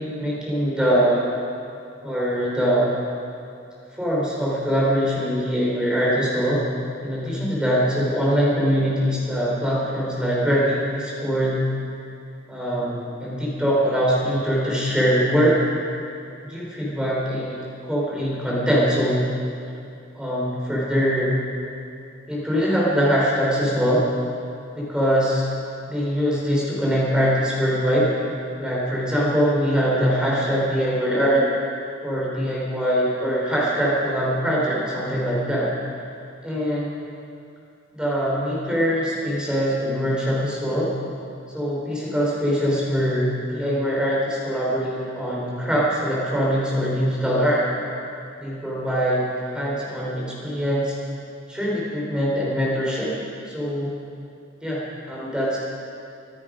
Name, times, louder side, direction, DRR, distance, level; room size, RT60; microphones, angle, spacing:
voice 1, 0.2-1.2 2.0-2.9 3.9-6.6 7.0-11.6 12.5-15.6 16.5-17.5 17.8-19.2 20.1-21.3 22.3-24.0 24.7-25.5 25.9-28.1 28.6-31.4 32.0-35.7 36.4-36.9 37.9-40.9 41.5-47.6 48.4-50.9 51.5-53.1 53.5-53.9 54.6-55.6, equal, 5° right, -6 dB, 4.2 m, -22 dB
25.5 x 9.8 x 5.2 m, 2.5 s
head